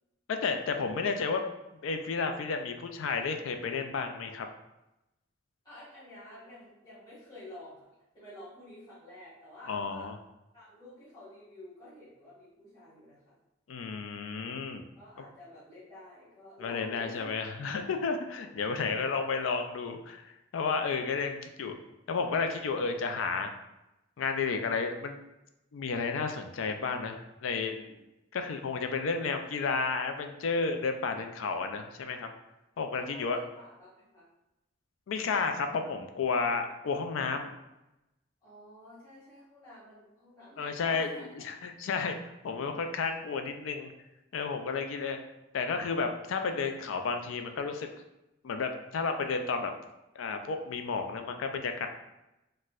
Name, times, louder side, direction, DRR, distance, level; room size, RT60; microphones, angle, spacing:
voice 1, 0.3-1.4 1.8-4.5 9.7-10.2 13.7-14.8 16.6-21.7 22.1-23.5 24.2-25.2 25.7-28.0 28.3-32.3 32.8-33.4 35.1-37.5 40.6-43.9 44.3-45.2 45.5-47.9 48.4-49.7 50.2-51.9, left 4 dB, 85° left, 6 dB, 0.4 m, -32 dB
voice 2, 5.6-10.1 10.5-13.3 14.9-17.3 33.0-34.2 38.4-41.5, left 1 dB, 20° left, -13 dB, 1.3 m, -50 dB
4.1 x 2.1 x 2.4 m, 0.94 s
head